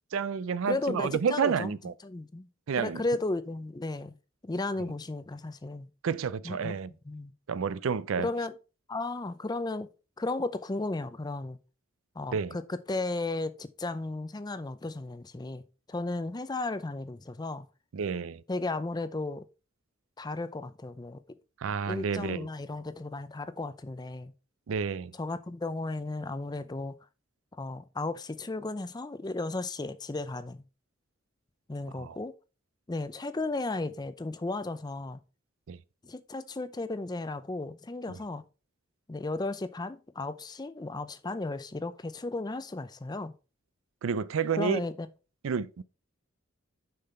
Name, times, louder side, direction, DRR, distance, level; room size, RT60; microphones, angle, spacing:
voice 1, 0.1-1.9 2.7-3.0 6.0-6.9 7.5-8.3 12.3-12.6 17.9-18.4 21.6-22.5 24.7-25.1 32.0-32.2 35.7-35.8 44.0-44.8 45.4-45.8, right 6 dB, 70° right, 0.4 m, -30 dB
voice 2, 0.6-1.8 2.0-2.5 2.8-4.2 4.4-5.9 6.4-6.7 7.0-7.3 8.2-8.5 8.9-9.9 10.2-11.6 12.2-15.6 15.9-17.7 18.5-19.4 20.2-21.2 21.9-24.3 25.1-27.0 27.6-30.6 31.7-32.3 32.9-35.2 36.0-38.5 39.1-43.3 44.5-45.1, left 2 dB, 20° left, 0.5 m, -34 dB
6.7 x 5.7 x 4.2 m
head